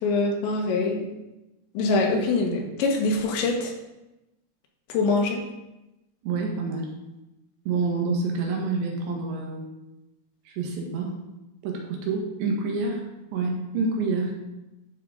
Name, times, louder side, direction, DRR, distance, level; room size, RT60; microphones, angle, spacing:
voice 1, 0.0-1.1 1.8-3.7 4.9-5.4, left 3 dB, 85° left, 1 dB, 3.6 m, -24 dB
voice 2, 6.2-6.9 7.7-9.6 10.5-11.1 11.6-13.0 13.3-14.4, right 3 dB, 90° right, 0 dB, 3.7 m, -27 dB
11.5 x 6.0 x 3.9 m, 0.98 s
omnidirectional pair, 5.0 m